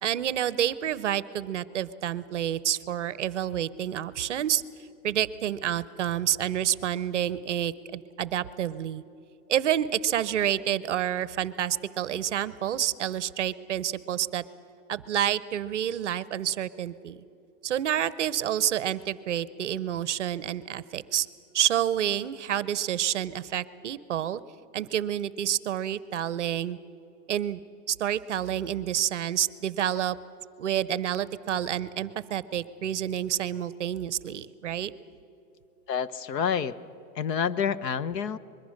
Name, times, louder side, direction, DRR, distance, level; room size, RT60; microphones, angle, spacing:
voice 1, 0.0-4.6 5.0-9.0 9.5-14.4 14.9-17.2 17.6-21.3 21.5-24.4 24.7-26.8 27.3-27.6 27.9-30.2 30.6-34.9, right 10 dB, 50° right, 17 dB, 0.6 m, -28 dB
voice 2, 35.9-36.7 37.1-38.4, left 7 dB, 80° left, 15 dB, 1.0 m, -28 dB
25.0 x 22.0 x 6.4 m, 2.7 s
supercardioid pair, 180°, 49 cm